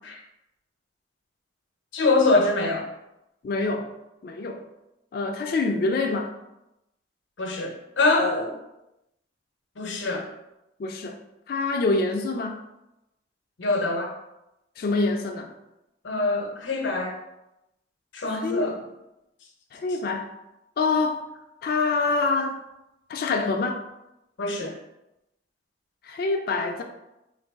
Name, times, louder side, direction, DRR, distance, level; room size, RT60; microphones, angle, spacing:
voice 1, 1.9-2.8 7.4-8.6 9.8-10.3 13.6-14.1 16.0-17.2 18.1-18.8 24.4-24.8, left 3 dB, 85° left, 1 dB, 0.7 m, -24 dB
voice 2, 3.4-3.9 4.2-4.6 5.1-6.3 10.8-11.2 11.5-12.6 14.8-15.5 18.3-18.7 19.7-20.3 20.8-21.2 21.6-22.6 23.1-23.8 26.0-26.8, left 3 dB, 50° left, 4 dB, 0.3 m, -25 dB
3.9 x 2.3 x 3.4 m, 0.92 s
head